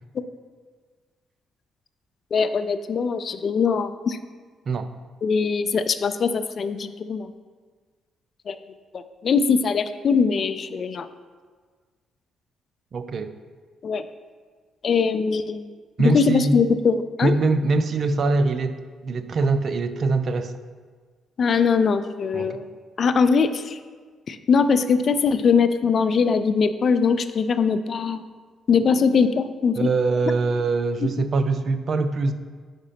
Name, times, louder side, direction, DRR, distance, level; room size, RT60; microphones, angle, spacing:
voice 1, 2.3-4.2 5.2-7.3 8.5-8.6 8.9-11.1 13.8-14.0 14.8-15.7 16.0-17.3 21.4-22.7 23.0-23.8 24.3-28.2 28.7-29.9 31.0-31.1, left 5 dB, 55° left, 11 dB, 0.4 m, -21 dB
voice 2, 12.9-13.3 16.0-16.6 17.2-18.8 19.0-20.5 22.3-22.6 29.8-32.3, right 3 dB, 55° right, 11 dB, 0.4 m, -23 dB
5.2 x 4.9 x 5.7 m, 1.5 s
hypercardioid pair, 50°, 0 cm